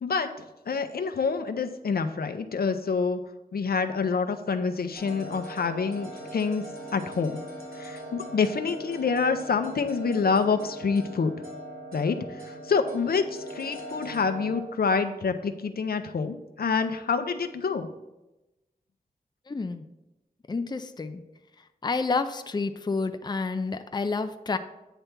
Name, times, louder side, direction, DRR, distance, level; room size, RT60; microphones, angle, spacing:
voice 1, 0.7-3.2 3.5-6.6 6.9-7.4 7.8-11.4 11.9-17.9, left 5 dB, 75° left, 8 dB, 0.6 m, -27 dB
sound 1, 5.0-14.6, right 1 dB, 70° right, 2.8 m, -41 dB
voice 2, 19.5-19.8 20.5-21.2 21.8-24.6, left 4 dB, 25° left, 8 dB, 0.4 m, -29 dB
8.9 x 3.4 x 5.9 m, 0.98 s
wide cardioid pair, 90°, 16 cm